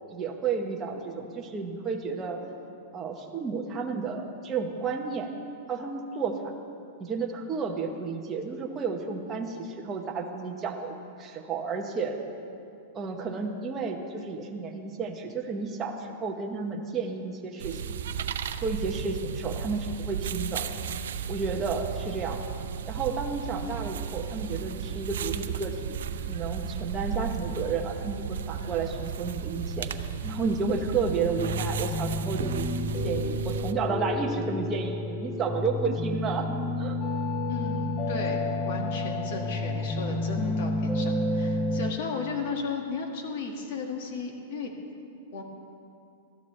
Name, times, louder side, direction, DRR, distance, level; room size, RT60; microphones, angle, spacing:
voice 1, 0.1-2.4 2.9-5.3 5.7-6.5 7.0-10.9 11.2-12.2 12.9-17.9 18.6-20.7 21.3-22.4 22.9-26.0 26.3-29.9 30.3-32.7 33.0-36.5 36.8-37.0, right 4 dB, 15° right, 1 dB, 1.0 m, -32 dB
sound 1, 17.6-33.7, right 7 dB, 85° right, 0.6 m, -34 dB
sound 2, 30.2-41.9, left 2 dB, 5° left, 0.5 m, -30 dB
voice 2, 37.5-44.7 45.3-45.4, left 3 dB, 45° left, 2 dB, 1.8 m, -35 dB
20.0 x 14.0 x 3.3 m, 2.6 s
supercardioid pair, 175°, 0 cm